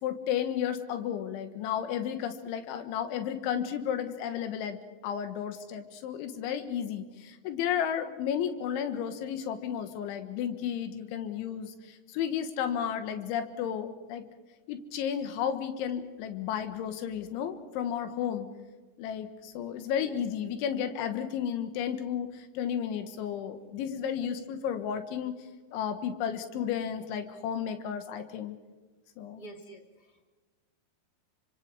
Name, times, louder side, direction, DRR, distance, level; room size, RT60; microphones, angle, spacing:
voice 1, 0.0-4.8 5.0-14.2 14.7-18.5 19.0-25.3 25.7-28.6 29.2-29.4, left 8 dB, 90° left, 8 dB, 3.8 m, -33 dB
voice 2, 29.4-30.3, right 2 dB, 15° left, 3 dB, 1.8 m, -48 dB
29.0 x 25.5 x 4.9 m, 1.3 s
omnidirectional pair, 5.2 m